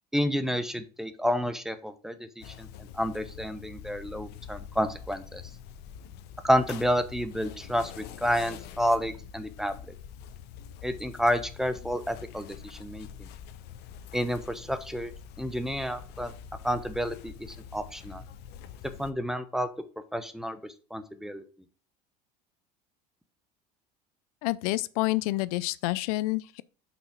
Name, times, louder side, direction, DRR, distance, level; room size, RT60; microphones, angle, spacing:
voice 1, 0.1-5.4 6.4-9.7 10.8-13.3 14.1-15.1 15.4-16.3 16.6-17.3 17.7-18.2 19.0-19.7 20.1-20.6 20.9-21.4, equal, ahead, 0.9 m, -30 dB
sound 1, 2.4-19.1, left 8 dB, 60° left, 0.8 m, -45 dB
voice 2, 24.4-26.6, left 20 dB, 80° left, 0.4 m, -28 dB
5.9 x 4.0 x 6.1 m
supercardioid pair, 105°, 19 cm